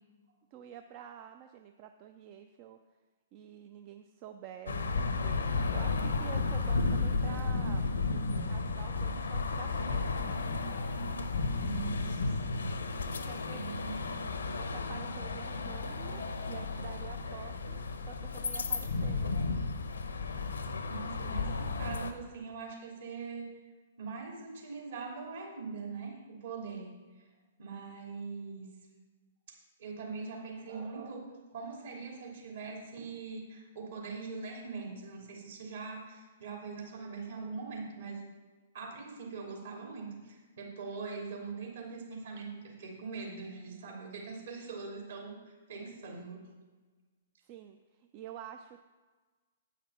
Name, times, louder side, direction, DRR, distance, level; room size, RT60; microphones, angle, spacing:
voice 1, 0.5-2.8 3.3-7.9 8.5-10.1 13.2-13.8 14.5-19.3 47.5-48.8, right 10 dB, 35° right, 7 dB, 0.5 m, -48 dB
sound 1, 4.7-22.1, left 3 dB, 70° left, 0.8 m, -33 dB
voice 2, 11.6-12.8 13.5-14.0 20.8-23.5 24.0-27.2 27.6-28.8 29.8-38.2 38.7-46.5, right 4 dB, 60° right, -1 dB, 2.7 m, -42 dB
8.8 x 5.9 x 5.6 m, 1.3 s
figure-of-eight pair, 115°, 0 cm